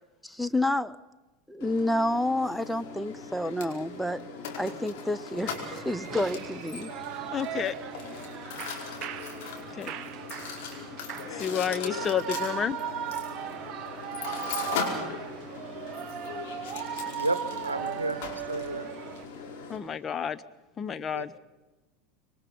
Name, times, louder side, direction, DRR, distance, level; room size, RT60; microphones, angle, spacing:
voice 1, 0.2-1.0 1.5-4.2 4.6-6.9, left 1 dB, 5° left, 12 dB, 0.8 m, -29 dB
Mechanisms, 1.6-19.8, left 5 dB, 60° left, 5.0 m, -39 dB
Shout / Cheering, 5.4-19.2, right 10 dB, 40° right, 1.1 m, -38 dB
voice 2, 7.3-7.8 9.8-9.9 11.3-12.8 19.7-20.4 20.8-21.3, left 8 dB, 30° left, 11 dB, 1.0 m, -30 dB
voice 3, 17.1-18.2 18.5-18.9 21.1-21.2, right 2 dB, 90° right, 16 dB, 0.9 m, -31 dB
26.5 x 22.5 x 5.4 m, 1.2 s
figure-of-eight pair, 80°, 0 cm